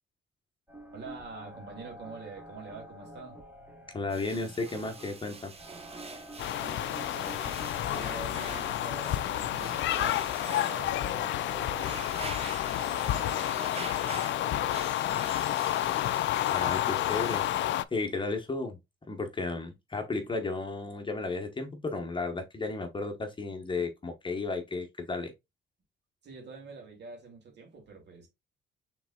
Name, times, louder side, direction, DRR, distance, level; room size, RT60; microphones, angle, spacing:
sound 1, 0.7-12.1, equal, 10° right, 1.3 m, -48 dB
voice 1, 0.9-3.4 6.5-12.0 12.8-14.9 26.2-28.3, right 4 dB, 60° right, 2.3 m, -46 dB
voice 2, 3.9-5.5 16.5-17.4 17.9-18.8 19.1-25.3, left 3 dB, 25° left, 1.1 m, -33 dB
sound 2, 4.1-17.5, right 3 dB, 30° right, 0.9 m, -45 dB
sound 3, 6.4-17.8, left 13 dB, 70° left, 0.4 m, -30 dB
5.8 x 3.8 x 2.3 m
cardioid pair, 90°, 20 cm